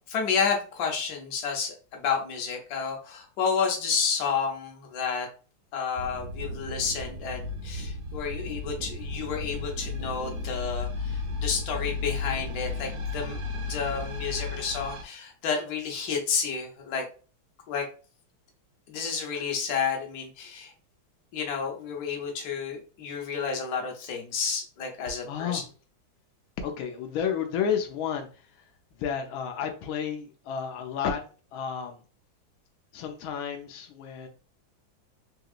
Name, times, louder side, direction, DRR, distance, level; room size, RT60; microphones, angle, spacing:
voice 1, 0.1-5.3 5.7-17.0 17.7-17.9 18.9-20.7 21.3-25.6, left 6 dB, 60° left, 1 dB, 1.1 m, -30 dB
sound 1, 6.0-15.0, left 3 dB, 60° right, 1.0 m, -34 dB
voice 2, 25.3-25.6 26.6-28.3 29.0-31.2 31.5-32.0 32.9-34.3, left 7 dB, 85° left, 4 dB, 1.4 m, -31 dB
3.6 x 2.8 x 2.4 m, 0.37 s
omnidirectional pair, 2.2 m